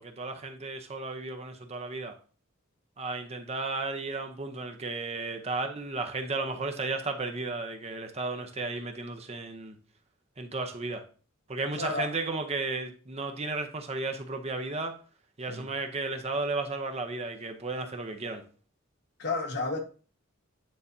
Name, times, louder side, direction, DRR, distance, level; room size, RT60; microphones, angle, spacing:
voice 1, 0.0-2.2 3.0-9.8 10.4-11.1 11.5-15.0 15.4-18.5, right 3 dB, 30° right, 0.7 m, -34 dB
voice 2, 11.8-12.1 15.5-15.6 19.2-19.8, left 3 dB, 55° left, 1.4 m, -31 dB
9.3 x 4.1 x 2.7 m
head